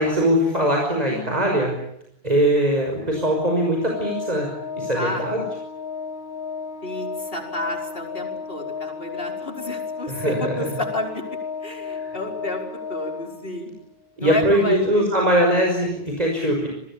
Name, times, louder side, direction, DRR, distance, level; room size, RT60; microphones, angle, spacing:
voice 1, 0.0-1.8 2.2-4.5 4.7-5.4 10.1-10.5 12.0-12.1 14.2-16.7, right 1 dB, 40° right, 1 dB, 6.0 m, -21 dB
voice 2, 1.1-1.6 5.0-5.2 6.8-11.3 11.6-12.6 12.9-13.7 14.2-15.1, left 2 dB, 70° left, 3 dB, 5.3 m, -30 dB
Organ, 3.1-13.8, left 5 dB, 90° left, 2.5 m, -33 dB
29.5 x 21.5 x 8.9 m, 0.77 s
omnidirectional pair, 1.0 m